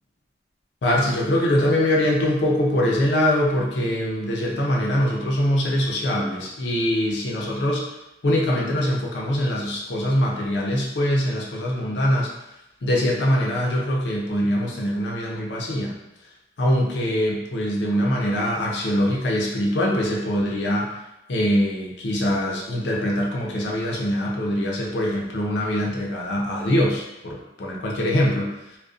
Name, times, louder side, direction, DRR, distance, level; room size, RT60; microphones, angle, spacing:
voice 1, 0.8-7.8 8.2-12.3 12.8-15.9 16.6-20.9 21.3-28.5, equal, 75° left, -2 dB, 0.5 m, -23 dB
2.4 x 2.1 x 2.4 m, 0.91 s
head